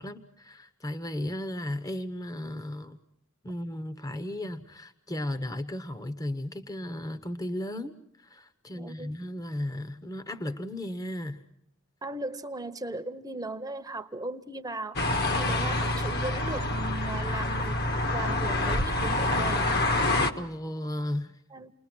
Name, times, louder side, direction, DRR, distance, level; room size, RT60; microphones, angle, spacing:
voice 1, 0.0-3.0 3.4-11.4 15.4-15.7 20.4-21.4, left 1 dB, 15° left, 12 dB, 0.9 m, -35 dB
voice 2, 8.7-9.2 12.0-15.0 15.4-20.0 21.5-21.7, right 2 dB, 20° right, 10 dB, 0.8 m, -37 dB
sound 1, 15.0-20.3, left 2 dB, 50° left, 1.4 m, -27 dB
29.5 x 21.0 x 6.1 m, 0.71 s
head